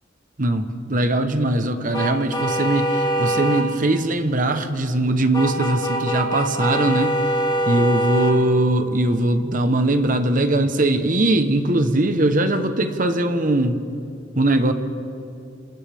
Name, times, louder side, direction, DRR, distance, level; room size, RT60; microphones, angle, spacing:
voice 1, 0.4-7.2 7.6-13.8 14.4-14.7, right 1 dB, 45° right, 8 dB, 1.1 m, -20 dB
sound 1, 1.9-3.7 5.3-8.4, right 1 dB, 20° left, 1.7 m, -23 dB
28.5 x 27.0 x 3.6 m, 2.5 s
head